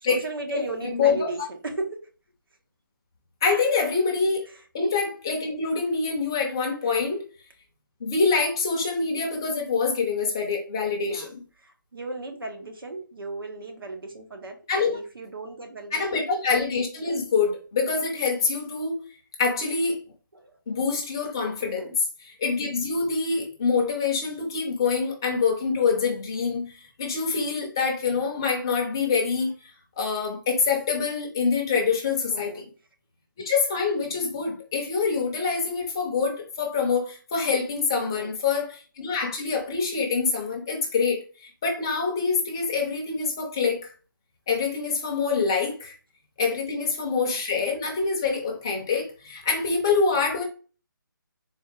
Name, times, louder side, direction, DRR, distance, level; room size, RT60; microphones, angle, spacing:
voice 1, 0.0-2.0 4.5-4.6 6.8-7.0 11.0-11.3 11.6-16.2 20.3-20.6 21.6-21.9 32.3-32.6 37.9-38.3 46.4-46.5, right 3 dB, 85° right, 1.2 m, -36 dB
voice 2, 0.5-1.3 3.4-4.4 4.7-7.3 8.0-11.4 14.7-15.0 15.9-19.0 19.4-20.0 20.7-22.0 22.4-29.7 30.0-32.6 33.4-43.9 44.5-45.9 46.4-50.4, left 5 dB, 10° left, 0.5 m, -25 dB
4.0 x 2.4 x 3.2 m
hypercardioid pair, 175°, 11 cm